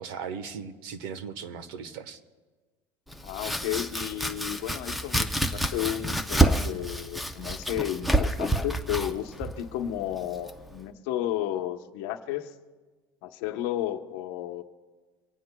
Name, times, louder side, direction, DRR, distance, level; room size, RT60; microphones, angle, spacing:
voice 1, 0.0-2.2, right 6 dB, 75° right, 11 dB, 1.2 m, -38 dB
Domestic sounds home sounds, 3.1-10.8, right 1 dB, ahead, 0.5 m, -28 dB
voice 2, 3.2-12.5 13.2-14.6, left 12 dB, 65° left, 7 dB, 0.9 m, -33 dB
24.5 x 18.0 x 2.3 m, 1.4 s
cardioid pair, 170°, 12 cm